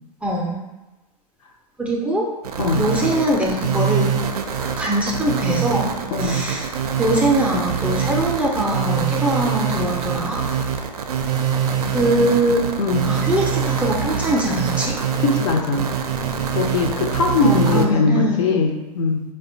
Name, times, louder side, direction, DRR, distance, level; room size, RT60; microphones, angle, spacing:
voice 1, 0.2-0.6 1.8-2.3 2.8-4.1 4.8-5.9 6.2-6.7 7.0-10.4 11.9-12.6 13.0-15.0 17.4-18.5, right 1 dB, 5° right, -3 dB, 0.4 m, -22 dB
sound 1, 2.4-17.9, right 7 dB, 75° right, 0.4 m, -24 dB
voice 2, 2.6-2.9 6.1-6.4 12.0-12.3 12.8-13.1 15.2-15.9 16.5-19.2, left 4 dB, 50° left, 2 dB, 0.5 m, -21 dB
4.0 x 2.2 x 2.6 m, 1.0 s
figure-of-eight pair, 95°, 20 cm